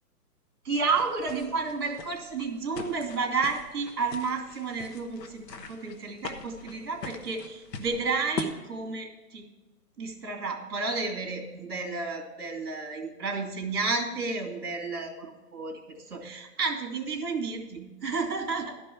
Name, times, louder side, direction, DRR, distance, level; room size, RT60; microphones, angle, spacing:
voice 1, 0.6-9.5 10.0-18.7, right 4 dB, 65° right, 2 dB, 2.6 m, -31 dB
sound 1, 0.7-8.4, left 5 dB, 90° left, 1.4 m, -42 dB
12.0 x 5.3 x 7.1 m, 1.1 s
hypercardioid pair, 175°, 48 cm